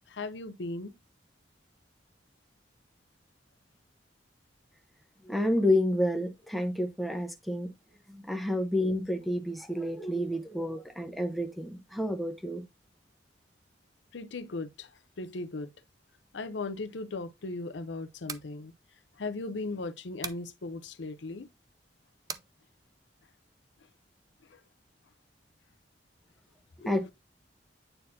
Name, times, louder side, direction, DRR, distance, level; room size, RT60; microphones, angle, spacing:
voice 1, 0.1-0.9 14.1-14.9 15.2-15.7 16.3-18.7 19.2-21.5 26.8-26.9, left 3 dB, 85° left, 0.7 m, -37 dB
voice 2, 5.3-7.7 8.1-12.6 26.8-27.1, left 1 dB, ahead, 0.9 m, -29 dB
sound 1, 18.2-18.5 20.2-20.5 22.3-22.5, right 6 dB, 20° right, 0.4 m, -39 dB
8.9 x 4.2 x 2.7 m
head